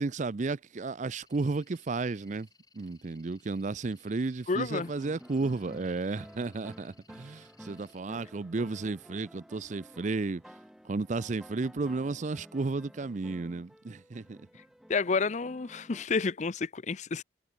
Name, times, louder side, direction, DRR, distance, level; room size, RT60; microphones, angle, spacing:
voice 1, 0.0-2.5 2.7-10.6 10.8-14.5, right 3 dB, 45° right, 0.5 m, -33 dB
sound 1, 1.1-8.0, left 5 dB, 20° left, 6.0 m, -64 dB
voice 2, 4.5-4.9 14.9-17.2, left 4 dB, 40° left, 0.6 m, -30 dB
sound 2, 4.7-16.0, equal, ahead, 1.5 m, -52 dB
head